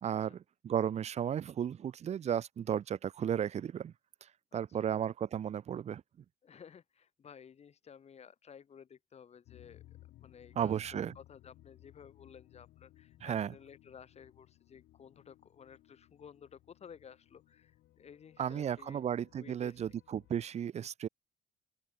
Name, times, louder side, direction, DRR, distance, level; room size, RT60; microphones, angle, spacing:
voice 1, 0.0-3.9 4.5-6.0 10.6-11.1 13.2-13.5 18.4-21.1, right 9 dB, 40° right, 0.8 m, -34 dB
voice 2, 4.5-4.9 6.4-9.8 10.2-19.1 19.4-19.8, left 7 dB, 40° left, 2.8 m, -55 dB
sound 1, 9.5-20.5, left 15 dB, 75° left, 6.9 m, -61 dB
open air
cardioid pair, 110°, 17 cm